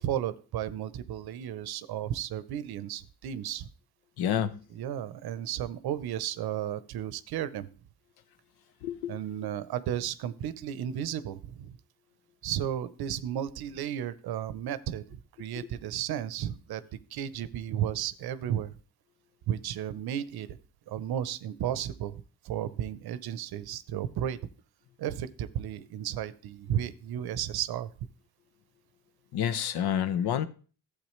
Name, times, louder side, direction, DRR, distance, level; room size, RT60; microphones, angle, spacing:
voice 1, 0.0-3.7 4.7-7.7 9.1-11.8 12.4-18.7 19.5-20.6 20.9-24.4 25.0-27.9, right 10 dB, 70° right, 0.7 m, -34 dB
voice 2, 4.2-4.6 8.8-9.2 29.3-30.5, left 9 dB, 75° left, 0.8 m, -28 dB
12.0 x 7.9 x 3.1 m
cardioid pair, 100°, 39 cm